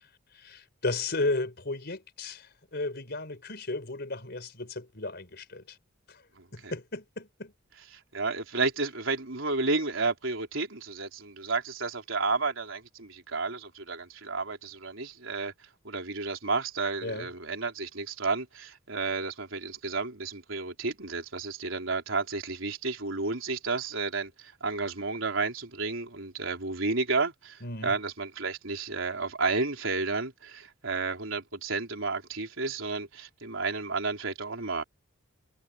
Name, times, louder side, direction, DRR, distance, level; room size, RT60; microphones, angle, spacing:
voice 1, 0.3-5.8 6.1-6.2 6.5-7.5 17.0-17.3 27.6-27.9, left 2 dB, 55° left, 4.7 m, -34 dB
voice 2, 6.4-6.7 8.1-15.5 15.8-34.8, right 3 dB, 85° right, 3.7 m, -32 dB
head